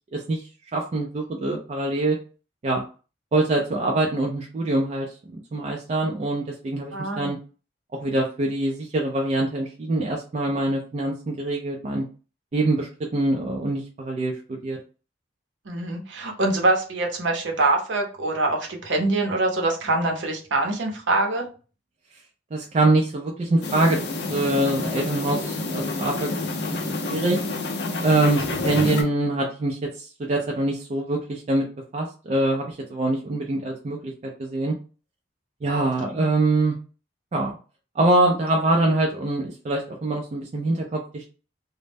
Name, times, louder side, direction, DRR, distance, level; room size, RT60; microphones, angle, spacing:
voice 1, 0.1-0.5 0.7-2.2 2.6-2.8 3.3-5.1 5.5-7.4 8.0-12.0 12.5-14.8 22.5-26.3 26.7-27.4 28.0-31.6 31.9-34.1 34.4-34.7 35.6-36.7 37.3-37.6 38.0-41.3, right 2 dB, 35° right, 0 dB, 0.3 m, -24 dB
voice 2, 6.9-7.3 15.7-21.5 35.7-36.3, right 2 dB, 75° right, 2 dB, 0.6 m, -24 dB
sound 1, 23.6-29.0, left 2 dB, 60° left, 0.5 m, -28 dB
2.1 x 2.0 x 3.3 m, 0.36 s
head